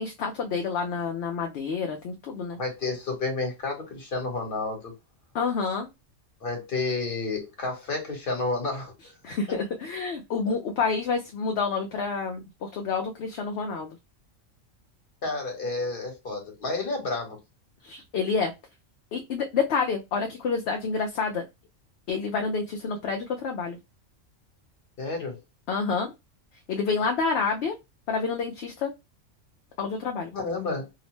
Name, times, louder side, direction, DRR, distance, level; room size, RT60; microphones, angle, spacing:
voice 1, 0.0-2.6 5.3-5.9 9.2-13.9 17.8-18.5 19.1-21.5 22.1-23.8 25.7-26.1 26.7-27.7 28.1-28.9 29.8-30.3, left 5 dB, 65° left, 0.8 m, -28 dB
voice 2, 2.6-4.9 6.4-9.1 15.2-17.4 25.0-25.4 30.3-30.9, left 3 dB, 45° left, 1.3 m, -30 dB
2.8 x 2.1 x 3.0 m
omnidirectional pair, 1.3 m